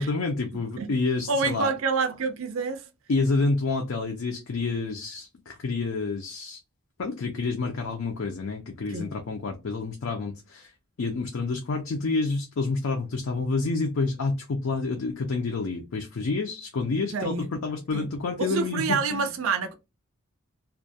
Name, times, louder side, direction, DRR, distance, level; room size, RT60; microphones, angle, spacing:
voice 1, 0.0-1.7 3.1-6.6 7.0-10.7 11.0-19.2, left 3 dB, 65° left, 0.5 m, -28 dB
voice 2, 1.3-2.9 8.9-9.1 17.1-17.5 17.9-18.0 18.4-19.7, right 4 dB, 70° right, 0.4 m, -27 dB
2.3 x 2.1 x 2.6 m
head